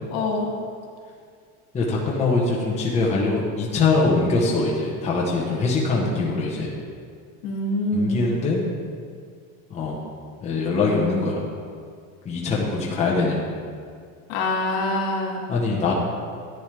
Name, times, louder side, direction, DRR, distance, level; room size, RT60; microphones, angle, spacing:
voice 1, 0.1-0.5 7.4-8.5 14.3-15.4, left 1 dB, 75° left, -2 dB, 2.5 m, -25 dB
voice 2, 1.7-6.7 7.9-8.6 9.7-10.0 10.4-11.4 12.2-13.6 15.5-15.9, left 3 dB, 15° left, -4 dB, 1.1 m, -23 dB
11.0 x 9.5 x 3.5 m, 2.1 s
cardioid pair, 165°, 41 cm